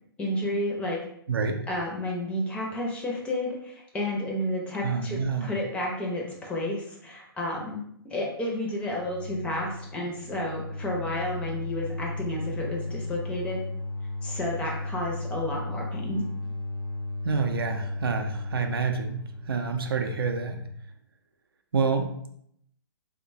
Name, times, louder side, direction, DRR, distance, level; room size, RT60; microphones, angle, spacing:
voice 1, 0.2-1.0 1.7-13.6 14.2-16.3, left 1 dB, 10° left, -2 dB, 0.5 m, -31 dB
voice 2, 1.3-1.6 4.8-5.5 17.2-19.2 19.5-20.6 21.7-22.1, right 5 dB, 70° right, 5 dB, 0.4 m, -27 dB
sound 1, 8.9-20.7, left 2 dB, 65° left, 0.5 m, -35 dB
2.9 x 2.1 x 2.6 m, 0.71 s
figure-of-eight pair, 120°, 13 cm